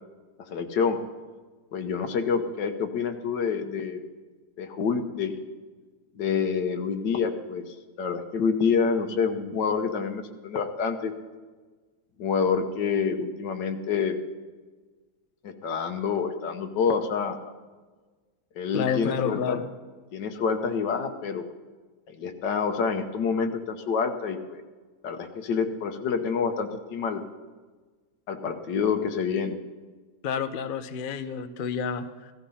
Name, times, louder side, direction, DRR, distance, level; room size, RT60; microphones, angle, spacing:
voice 1, 0.5-1.0 1.7-4.0 4.6-5.4 6.1-11.1 12.2-14.2 15.4-17.4 18.5-19.6 20.1-21.5 22.1-24.6 25.0-27.2 28.3-29.6, left 6 dB, 85° left, 7 dB, 1.7 m, -27 dB
voice 2, 18.7-19.7 30.2-32.3, left 7 dB, 45° left, 10 dB, 0.7 m, -29 dB
16.0 x 13.5 x 5.7 m, 1.4 s
omnidirectional pair, 1.8 m